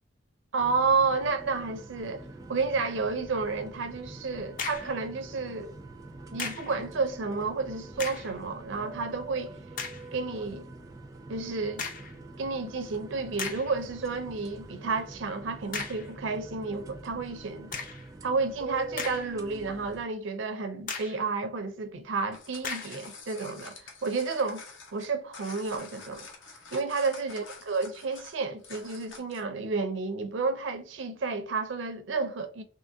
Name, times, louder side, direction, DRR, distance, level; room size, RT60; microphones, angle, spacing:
voice 1, 0.5-5.7 6.3-9.5 10.1-10.7 11.3-11.9 12.4-17.7 18.2-24.6 24.9-26.3 26.7-32.6, right 4 dB, 75° right, 0.5 m, -31 dB
sound 1, 0.6-20.1, right 2 dB, 20° right, 0.3 m, -45 dB
sound 2, 4.6-5.0 6.4-6.8 7.9-8.4 9.0-9.1 9.8-10.1 11.8-12.2 12.9-13.0 13.4-13.8 15.7-16.1 17.7-18.1 18.7-19.5 19.9-20.0 20.9-21.3 22.6-23.0, left 5 dB, 45° left, 0.5 m, -37 dB
sound 3, 22.2-29.5, left 4 dB, 75° left, 0.8 m, -47 dB
3.7 x 2.9 x 2.6 m
head